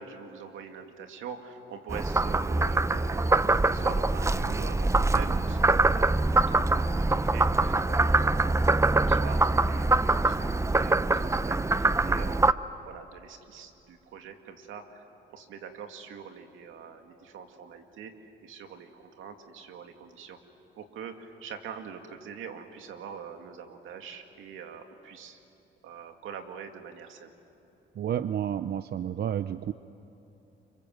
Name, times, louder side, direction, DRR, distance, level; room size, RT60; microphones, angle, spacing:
voice 1, 0.0-10.4 10.7-20.4 20.8-25.4 25.8-27.3, right 6 dB, 85° right, 5 dB, 2.4 m, -44 dB
Frog, 1.9-12.5, right 2 dB, 15° right, 0.6 m, -24 dB
voice 2, 28.0-29.7, right 9 dB, 55° right, 12 dB, 0.7 m, -30 dB
29.5 x 26.0 x 7.8 m, 3.0 s
cardioid pair, 90°, 20 cm